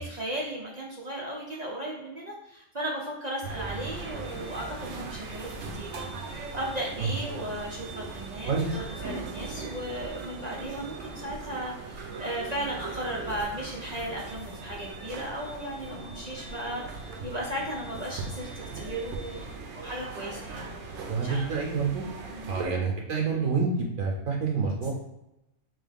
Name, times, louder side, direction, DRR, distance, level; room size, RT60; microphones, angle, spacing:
voice 1, 0.0-18.5 18.7-21.5 22.3-22.6, right 1 dB, 45° right, -3 dB, 0.5 m, -36 dB
sound 1, 3.4-22.7, right 3 dB, 65° right, 0.9 m, -39 dB
voice 2, 8.5-8.8 21.1-22.1 22.5-24.9, right 5 dB, 80° right, 0 dB, 1.1 m, -28 dB
3.8 x 3.1 x 3.4 m, 0.89 s
omnidirectional pair, 1.4 m